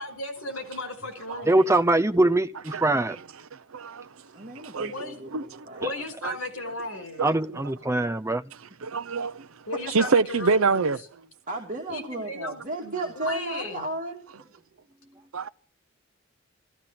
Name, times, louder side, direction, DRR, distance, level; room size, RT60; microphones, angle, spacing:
voice 1, 0.0-1.7 4.8-5.2 5.8-7.3 9.7-10.9 11.9-12.6 13.2-13.8, left 2 dB, 80° left, 5.2 m, -35 dB
voice 2, 1.5-3.2 5.8-5.9 7.2-8.4, right 2 dB, 15° right, 0.7 m, -22 dB
voice 3, 3.7-4.1 4.5-4.9 5.3-5.8 6.2-6.3 7.2-7.3 8.8-9.5 9.9-11.0 15.3-15.5, right 4 dB, 75° right, 0.7 m, -25 dB
voice 4, 4.3-5.9 11.5-14.2, right 2 dB, 35° right, 2.7 m, -34 dB
15.0 x 15.0 x 5.9 m
head